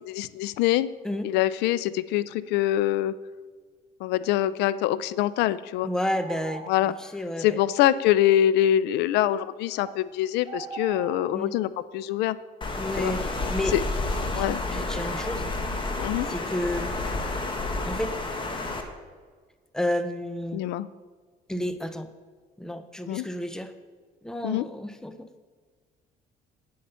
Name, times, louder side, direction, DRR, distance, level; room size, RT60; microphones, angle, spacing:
voice 1, 0.0-0.9 1.2-3.1 4.0-5.9 6.7-6.9 7.4-12.4 13.0-13.1 13.7-13.8 14.3-14.6 16.0-16.3 20.5-20.9 23.1-23.2 24.4-24.7, left 12 dB, 85° left, 17 dB, 0.4 m, -24 dB
voice 2, 5.8-6.6 7.1-7.6 11.3-11.5 12.8-13.7 14.3-14.4 14.7-15.5 16.3-16.9 17.9-18.1 19.7-20.6 21.5-22.1 22.6-23.7 24.2-25.1, left 1 dB, 5° left, 9 dB, 0.7 m, -30 dB
sound 1, 6.1-7.0 9.8-10.0 10.4-11.3, right 5 dB, 30° right, 0.9 m, -39 dB
Water, 12.6-18.8, left 2 dB, 30° left, 1.4 m, -30 dB
9.4 x 7.6 x 5.6 m, 1.5 s
cardioid pair, 110°, 17 cm